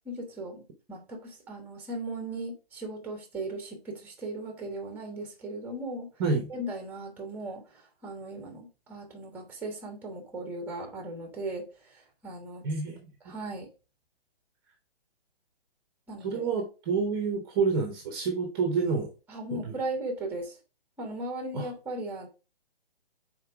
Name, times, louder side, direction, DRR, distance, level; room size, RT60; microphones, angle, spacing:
voice 1, 0.0-0.6 0.9-6.1 6.5-12.6 13.2-13.7 16.1-16.4 19.3-20.6 21.0-22.3, right 2 dB, 5° right, 1.3 m, -37 dB
voice 2, 12.6-13.1 16.2-19.1 19.5-19.7 21.5-21.7, right 4 dB, 25° right, 1.0 m, -28 dB
5.6 x 4.3 x 4.6 m
hypercardioid pair, 150°, 31 cm